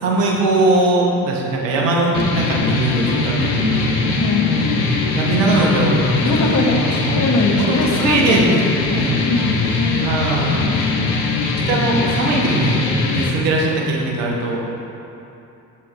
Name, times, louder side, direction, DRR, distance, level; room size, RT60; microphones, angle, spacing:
voice 1, 0.0-3.8 5.1-7.2 7.6-9.2 10.0-10.7 11.7-12.8 13.1-14.6, right 2 dB, 75° right, -1 dB, 1.2 m, -20 dB
sound 1, 2.1-13.3, left 3 dB, 70° left, 0.9 m, -20 dB
voice 2, 4.2-4.5 6.2-10.1, left 3 dB, 45° left, 3 dB, 1.0 m, -22 dB
8.2 x 7.7 x 3.3 m, 2.8 s
hypercardioid pair, 40°, 43 cm